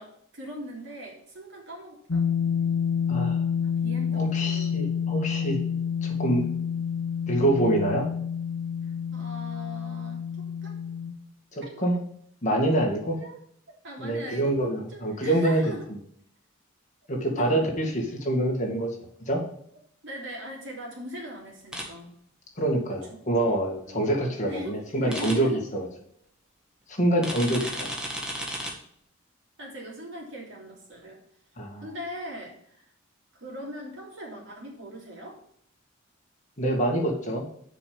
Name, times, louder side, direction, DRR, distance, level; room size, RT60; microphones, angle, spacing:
voice 1, 0.0-2.3 3.6-4.8 9.1-10.8 11.6-11.8 13.1-13.4 13.7-14.6 14.9-15.9 17.4-17.7 20.0-22.1 22.9-23.2 23.8-24.1 24.4-25.6 27.5-27.8 28.4-28.5 29.6-31.2 31.8-32.8 33.3-35.4, equal, 60° right, -2 dB, 3.2 m, -40 dB
sound 1, 2.1-11.1, left 7 dB, 75° left, 0.9 m, -28 dB
voice 2, 3.1-3.4 4.2-5.6 6.0-6.5 7.3-8.0 11.6-11.9 12.4-13.2 14.0-15.7 17.1-18.9 19.3-19.4 22.6-25.9 26.9-27.9 31.6-31.9 36.6-37.5, right 1 dB, 35° left, 0 dB, 2.1 m, -26 dB
sound 2, 21.7-21.8 25.1-25.3 27.2-28.7, equal, 5° right, 1.6 m, -33 dB
6.8 x 5.1 x 7.1 m, 0.65 s
head